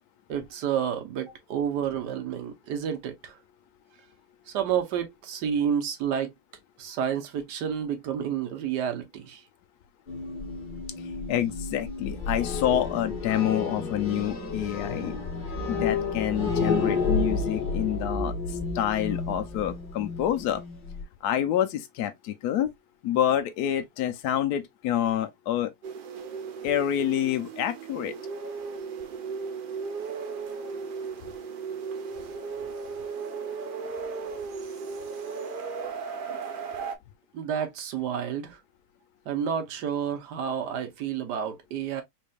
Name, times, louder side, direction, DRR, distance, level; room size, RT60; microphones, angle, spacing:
voice 1, 0.3-3.4 4.5-6.3 6.8-9.4 37.3-38.6 39.3-42.0, right 8 dB, 90° right, 1.5 m, -30 dB
sound 1, 10.1-21.0, left 4 dB, 35° left, 1.1 m, -31 dB
voice 2, 11.0-15.2 15.7-20.6 21.2-22.7 23.0-25.7 26.6-28.1, left 11 dB, 75° left, 1.1 m, -27 dB
sound 2, 25.8-37.0, right 5 dB, 60° right, 0.5 m, -36 dB
4.2 x 3.3 x 2.3 m
omnidirectional pair, 1.8 m